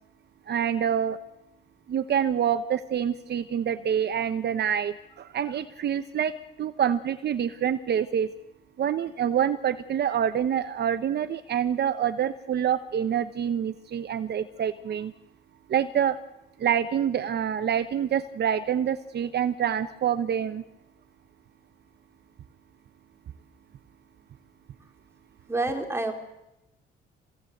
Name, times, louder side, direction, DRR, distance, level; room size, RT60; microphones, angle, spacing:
voice 1, 0.5-1.2 1.9-8.3 8.8-15.1 15.7-16.2 16.6-20.6, right 9 dB, 55° right, 10 dB, 1.1 m, -26 dB
voice 2, 25.5-26.1, right 2 dB, 10° right, 3 dB, 4.1 m, -27 dB
24.5 x 17.5 x 8.0 m, 0.92 s
cardioid pair, 90°, 20 cm